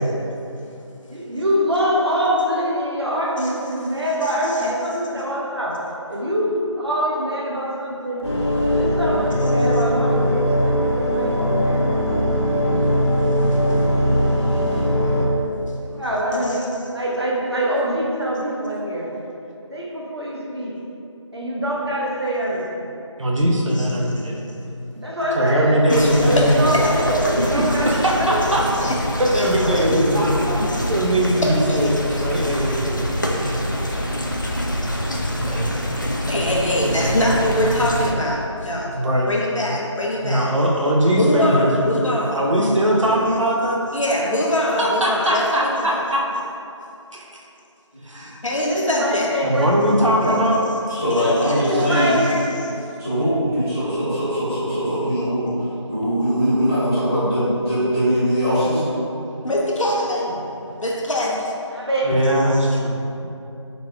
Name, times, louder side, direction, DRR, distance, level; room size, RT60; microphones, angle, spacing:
voice 1, 1.1-5.8 6.1-8.3 8.7-12.0 15.9-19.1 19.7-20.8 21.3-22.9 25.0-28.6 29.6-30.7 48.5-49.7 50.2-50.4 51.4-52.3 61.7-62.1, equal, 55° right, -4 dB, 0.9 m, -24 dB
sound 1, 8.2-15.3, equal, 65° left, 1.1 m, -20 dB
voice 2, 23.2-24.4 25.3-26.7 27.5-28.7 29.2-30.3 30.9-33.4 33.9-34.0 35.4-35.7 38.9-39.3 40.2-41.7 42.3-43.8 44.8-46.2 47.1-47.2 48.0-48.4 49.4-50.6 62.0-63.0, equal, 80° right, -3 dB, 0.7 m, -20 dB
voice 3, 25.9-26.9 28.8-29.0 29.3-29.5 31.7-31.8 32.1-32.2 32.7-32.9 35.7-35.8 36.3-38.9 39.3-40.5 41.1-42.4 43.9-46.0 48.4-49.3 51.1-51.6 52.2-52.4 59.4-60.3 60.8-61.5, left 1 dB, 80° left, -3 dB, 0.9 m, -23 dB
sound 2, 25.9-38.1, equal, 40° left, 0.4 m, -25 dB
voice 4, 50.9-52.1 53.0-55.5 55.9-58.9, equal, 10° left, -21 dB, 1.1 m, -21 dB
4.8 x 4.1 x 2.2 m, 2.8 s
figure-of-eight pair, 175°, 16 cm